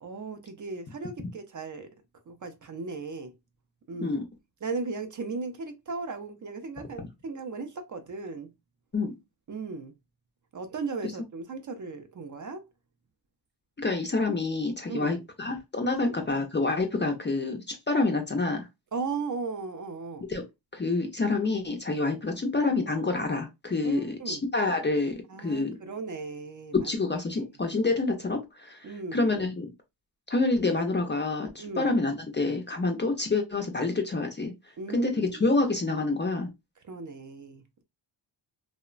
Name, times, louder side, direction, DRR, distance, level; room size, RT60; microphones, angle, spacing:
voice 1, 0.0-1.9 2.3-3.3 3.9-4.2 4.6-8.5 9.5-9.9 10.5-12.6 14.9-15.2 16.0-16.2 18.9-20.3 23.8-24.4 25.3-26.9 27.3-27.4 28.8-29.3 31.6-32.0 34.8-35.4 36.8-37.8, right 4 dB, 40° right, 0.4 m, -36 dB
voice 2, 13.8-18.7 20.3-20.4 20.7-25.7 26.8-29.7 30.3-34.5 34.9-36.5, left 3 dB, 25° left, 0.4 m, -27 dB
2.9 x 2.1 x 2.3 m
wide cardioid pair, 105°, 47 cm